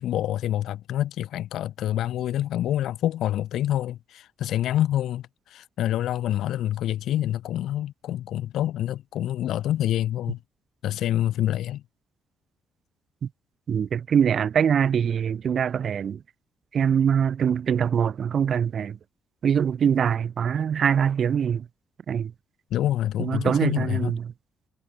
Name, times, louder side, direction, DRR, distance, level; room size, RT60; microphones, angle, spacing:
voice 1, 0.0-10.4 10.8-11.8 22.7-24.1, left 12 dB, 80° left, 0.5 m, -27 dB
voice 2, 13.7-16.2 16.7-19.0 19.4-21.7 22.1-22.3 23.2-24.2, right 8 dB, 55° right, 0.4 m, -23 dB
cardioid pair, 90°, 0 cm